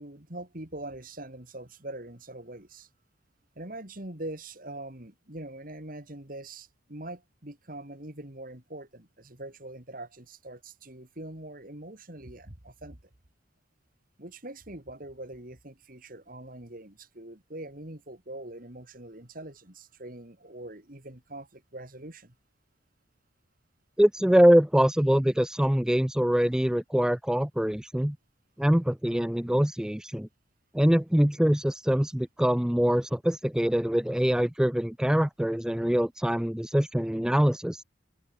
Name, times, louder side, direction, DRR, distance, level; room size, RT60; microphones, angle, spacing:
voice 1, 0.0-2.9 3.5-13.0 14.2-22.3, right 1 dB, 45° right, 2.9 m, -43 dB
voice 2, 24.0-28.2 28.6-30.3 30.7-37.8, equal, 5° right, 0.4 m, -24 dB
open air
head